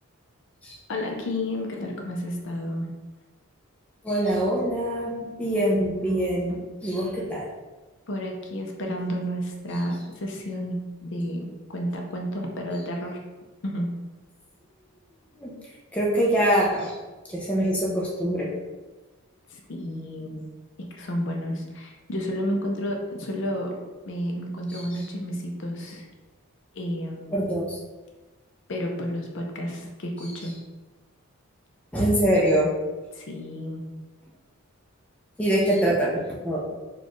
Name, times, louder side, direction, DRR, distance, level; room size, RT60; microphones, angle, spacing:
voice 1, 0.9-2.9 6.5-6.6 8.1-13.2 13.6-13.9 19.5-20.4 20.9-23.8 24.0-26.1 26.7-27.4 28.7-30.5 33.1-33.8, equal, 55° left, 1 dB, 0.5 m, -31 dB
voice 2, 4.0-7.5 15.4-15.5 15.9-16.9 17.3-18.5 24.7-24.8 27.3-27.8 31.9-32.7 35.4-36.7, right 1 dB, 5° left, -4 dB, 0.5 m, -24 dB
4.2 x 2.3 x 3.0 m, 1.2 s
head